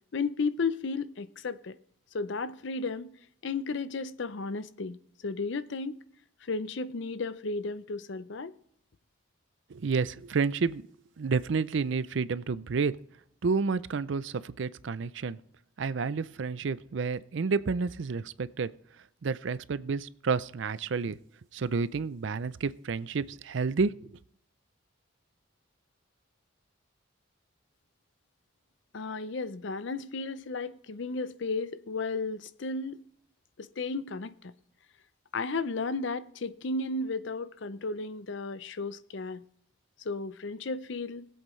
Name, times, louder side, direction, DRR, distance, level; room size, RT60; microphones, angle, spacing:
voice 1, 0.1-1.8 2.1-3.2 3.4-5.0 5.2-6.0 6.4-8.5 28.9-33.0 33.6-34.5 35.3-39.4 40.0-41.3, left 3 dB, 65° left, 0.6 m, -34 dB
voice 2, 9.7-10.8 11.2-12.9 13.4-15.4 15.8-18.7 19.2-21.2 21.5-23.9, right 4 dB, 65° right, 0.5 m, -30 dB
20.5 x 7.9 x 3.2 m
head